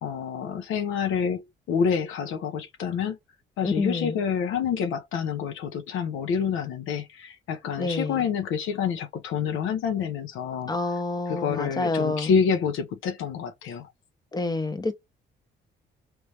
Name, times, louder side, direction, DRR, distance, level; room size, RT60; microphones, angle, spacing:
voice 1, 0.0-3.2 3.6-10.7 11.3-13.9, left 7 dB, 85° left, 0.8 m, -28 dB
voice 2, 3.6-4.2 7.8-8.2 10.7-12.3 14.3-14.9, left 3 dB, 20° left, 1.0 m, -28 dB
3.2 x 3.2 x 2.7 m
cardioid pair, 90°, 20 cm